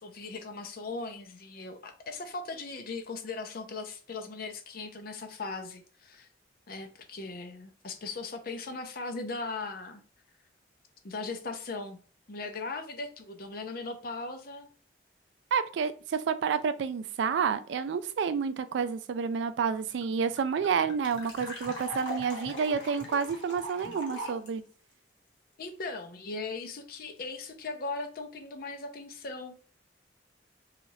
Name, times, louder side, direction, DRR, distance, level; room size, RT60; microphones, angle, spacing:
voice 1, 0.0-6.3 6.7-10.0 11.0-12.0 12.3-14.7 25.6-29.7, left 3 dB, 55° left, 0.5 m, -38 dB
voice 2, 15.5-24.6, right 6 dB, 75° right, 0.3 m, -29 dB
sound 1, 19.7-19.8 20.0-20.1 20.4-24.5, equal, 90° left, 1.0 m, -40 dB
3.1 x 2.4 x 2.7 m
head